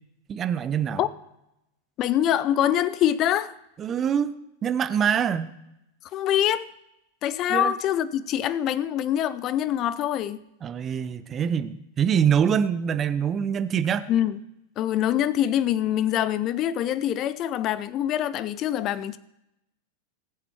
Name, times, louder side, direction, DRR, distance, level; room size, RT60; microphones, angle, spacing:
voice 1, 0.3-1.0 3.8-4.3 4.6-5.5 7.5-7.7 10.6-14.1, right 8 dB, 25° right, 0.7 m, -24 dB
voice 2, 2.0-3.5 6.1-6.7 7.2-10.4 14.1-14.4 14.8-19.2, left 11 dB, 35° left, 0.6 m, -24 dB
19.5 x 7.7 x 4.5 m
figure-of-eight pair, 90°, 0 cm